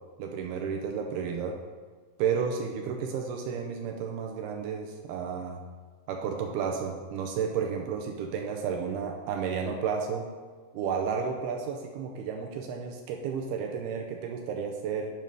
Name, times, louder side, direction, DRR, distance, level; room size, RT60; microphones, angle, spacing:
voice 1, 0.2-1.6 2.2-5.6 6.1-10.3 10.7-15.1, right 6 dB, 85° right, 3 dB, 2.4 m, -32 dB
9.1 x 5.1 x 5.4 m, 1.5 s
omnidirectional pair, 4.9 m